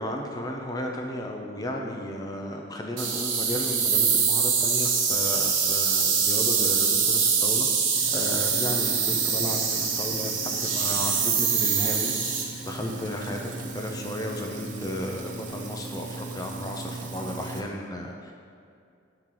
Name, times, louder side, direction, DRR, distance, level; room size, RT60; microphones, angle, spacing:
voice 1, 0.0-7.7 8.1-12.1 12.7-18.3, left 1 dB, 20° left, 1 dB, 0.5 m, -34 dB
sound 1, 3.0-12.4, right 6 dB, 70° right, 0.9 m, -24 dB
Sink (filling or washing), 7.9-17.6, right 3 dB, 40° right, 0.6 m, -39 dB
8.3 x 4.5 x 3.8 m, 2.4 s
head